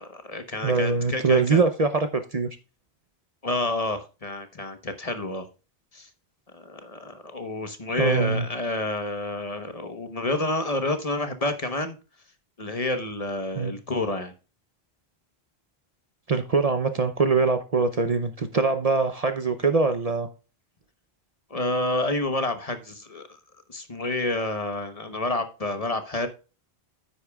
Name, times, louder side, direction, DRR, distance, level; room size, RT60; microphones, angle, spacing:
voice 1, 0.0-1.6 3.4-5.5 5.9-6.1 6.5-12.0 12.6-14.3 21.5-23.4 23.7-26.3, left 2 dB, 35° left, 8 dB, 1.1 m, -29 dB
voice 2, 0.6-2.5 8.0-8.5 13.6-13.7 16.3-20.3, right 4 dB, 40° right, 9 dB, 0.8 m, -23 dB
9.8 x 8.5 x 2.3 m, 0.33 s
omnidirectional pair, 1.1 m